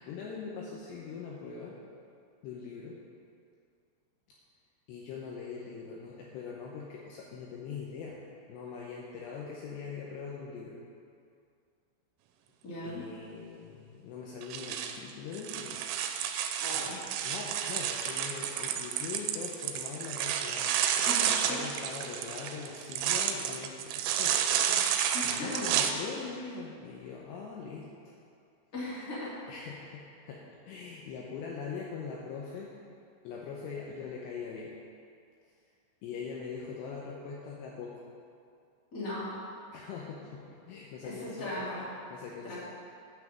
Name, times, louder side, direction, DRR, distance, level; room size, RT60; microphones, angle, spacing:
voice 1, 0.0-1.8 2.4-3.0 4.9-8.2 8.5-10.8 12.8-15.8 16.8-24.4 24.8-27.9 29.5-32.7 33.2-34.7 36.0-38.0 39.7-41.6 42.1-42.6, left 5 dB, 80° left, -3 dB, 2.6 m, -42 dB
voice 2, 12.6-13.0 16.6-17.0 21.0-21.6 25.1-25.6 28.7-29.3 38.9-39.4 41.0-41.8 42.4-42.6, left 1 dB, 25° left, -9 dB, 2.2 m, -38 dB
sound 1, 14.4-25.9, right 9 dB, 85° right, 3.0 m, -31 dB
9.1 x 5.8 x 7.7 m, 2.3 s
omnidirectional pair, 5.6 m